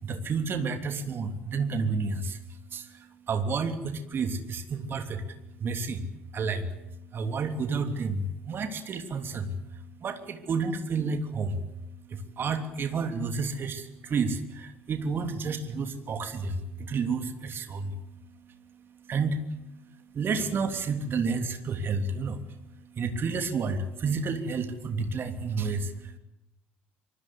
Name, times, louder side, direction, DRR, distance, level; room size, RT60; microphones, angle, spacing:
voice 1, 0.0-26.2, right 4 dB, 35° right, 7 dB, 3.2 m, -31 dB
25.0 x 24.5 x 8.1 m, 0.85 s
figure-of-eight pair, 60°, 6 cm